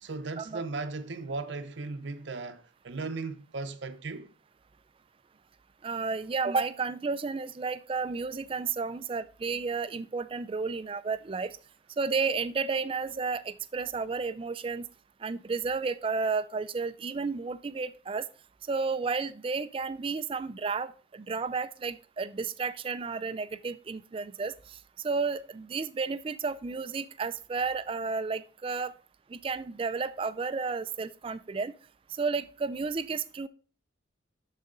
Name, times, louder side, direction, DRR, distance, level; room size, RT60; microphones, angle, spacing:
voice 1, 0.0-4.3, right 3 dB, 65° right, 0.7 m, -37 dB
voice 2, 5.8-11.6 12.0-14.9 15.2-18.3 18.7-24.8 25.0-28.9 29.3-31.7 32.2-33.5, right 4 dB, 25° right, 0.3 m, -32 dB
12.0 x 4.1 x 3.8 m
head